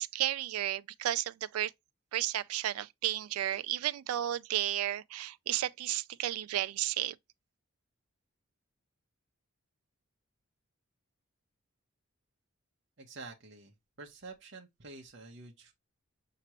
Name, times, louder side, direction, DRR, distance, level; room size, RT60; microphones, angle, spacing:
voice 1, 0.0-1.7 2.1-7.2, right 13 dB, 90° right, 0.3 m, -33 dB
voice 2, 13.0-15.7, right 3 dB, 55° right, 0.9 m, -49 dB
5.9 x 2.9 x 2.9 m
head